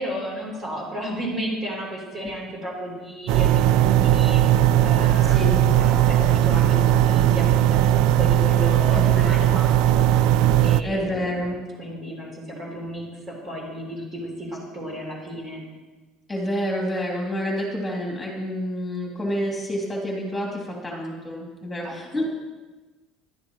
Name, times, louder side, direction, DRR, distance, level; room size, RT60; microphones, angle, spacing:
voice 1, 0.0-10.1 10.6-11.1 11.8-15.6 21.8-22.0, equal, 20° right, -2 dB, 3.5 m, -33 dB
sound 1, 3.3-10.8, right 12 dB, 60° right, 0.3 m, -18 dB
voice 2, 5.3-5.6 8.9-9.6 10.8-11.6 16.3-22.2, equal, 10° left, -2 dB, 2.9 m, -28 dB
20.5 x 12.0 x 3.1 m, 1.2 s
cardioid pair, 180°, 0 cm